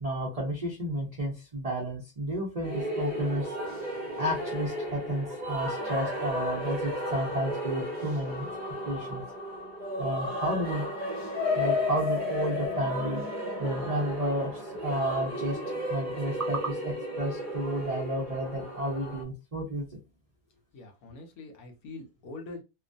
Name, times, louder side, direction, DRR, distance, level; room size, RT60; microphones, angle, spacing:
voice 1, 0.0-3.5 4.2-8.5 8.9-9.2 10.0-10.9 11.6-13.2 13.6-15.6 15.9-19.9, right 1 dB, 60° right, -3 dB, 0.3 m, -31 dB
sound 1, 2.6-19.2, left 1 dB, 35° right, 0.7 m, -33 dB
voice 2, 20.7-22.6, left 3 dB, 70° left, 3 dB, 1.2 m, -43 dB
2.9 x 2.1 x 2.5 m, 0.27 s
omnidirectional pair, 1.7 m